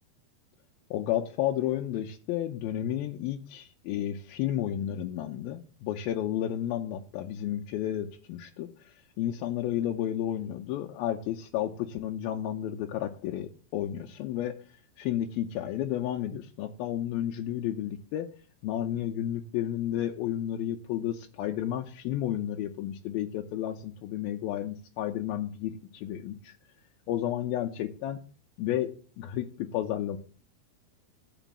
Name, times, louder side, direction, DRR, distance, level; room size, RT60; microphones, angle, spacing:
voice 1, 0.9-14.5 15.0-18.3 18.6-26.6 27.1-28.2 28.6-28.9 29.2-30.2, left 11 dB, 75° left, 2 dB, 2.4 m, -32 dB
14.5 x 5.0 x 7.3 m, 0.42 s
omnidirectional pair, 4.7 m